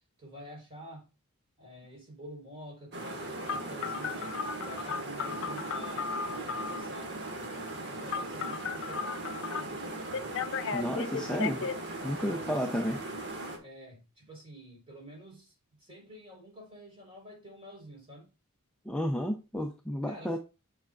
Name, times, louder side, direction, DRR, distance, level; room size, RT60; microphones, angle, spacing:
voice 1, 0.2-1.1 1.6-10.3 12.1-12.6 13.6-18.3 20.0-20.4, equal, 25° right, 4.0 m, -49 dB
sound 1, 2.9-13.6, right 2 dB, 55° right, 1.8 m, -39 dB
Telephone, 3.5-6.8 8.1-9.6 10.1-11.7, left 6 dB, 60° left, 0.5 m, -35 dB
voice 2, 10.7-11.7 12.0-13.0 18.9-20.4, equal, 5° left, 0.6 m, -32 dB
9.2 x 5.8 x 2.4 m
head